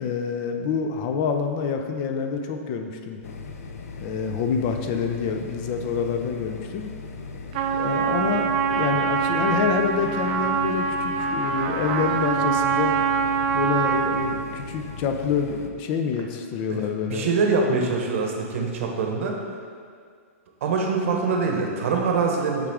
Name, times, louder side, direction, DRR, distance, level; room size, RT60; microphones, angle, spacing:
voice 1, 0.0-3.2 4.0-6.9 7.7-13.0 13.5-17.8, left 6 dB, 35° left, 5 dB, 0.4 m, -27 dB
sound 1, 3.2-15.7, left 4 dB, 90° left, 0.5 m, -38 dB
Trumpet, 7.5-14.5, right 6 dB, 40° right, 0.4 m, -24 dB
voice 2, 17.0-19.4 20.6-22.7, right 4 dB, 65° right, 1 dB, 0.9 m, -24 dB
8.0 x 3.6 x 3.5 m, 2.1 s
hypercardioid pair, 155°, 8 cm